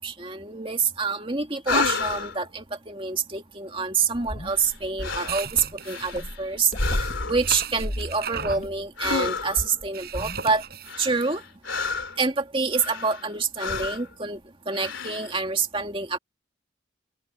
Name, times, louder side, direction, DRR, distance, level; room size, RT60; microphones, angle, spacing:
voice 1, 0.0-10.6 11.0-11.4 12.2-16.2, right 4 dB, 25° right, 2.3 m, -27 dB
sound 1, 1.7-2.4 4.5-4.7 5.0-5.4 5.8-6.4 6.7-7.5 9.0-9.7 10.9-12.2 12.7-13.3 13.6-14.1 14.7-15.3, left 4 dB, 85° left, 3.4 m, -29 dB
sound 2, 4.1-10.7, equal, 40° left, 2.9 m, -37 dB
sound 3, 5.2-6.2 7.4-8.7 9.9-10.9, right 7 dB, 55° right, 6.8 m, -35 dB
open air
head